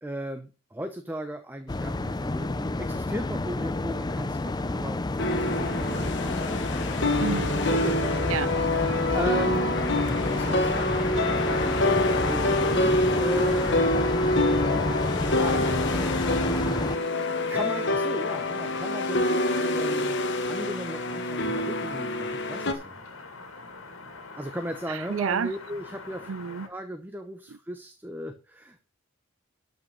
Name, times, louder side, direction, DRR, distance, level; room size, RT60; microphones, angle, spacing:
voice 1, 0.0-7.2 7.5-9.8 10.3-13.9 15.4-20.2 20.5-23.0 24.4-26.3 26.7-28.8, right 1 dB, 10° right, 0.8 m, -37 dB
sound 1, 1.7-17.0, left 2 dB, 20° left, 0.4 m, -29 dB
sound 2, 5.2-22.7, left 2 dB, 60° left, 1.5 m, -26 dB
voice 2, 7.2-7.5 8.3-8.5 24.9-25.5 26.3-26.7, right 6 dB, 75° right, 0.5 m, -29 dB
sound 3, 10.9-26.7, left 3 dB, 80° left, 2.5 m, -44 dB
12.5 x 5.5 x 5.6 m
head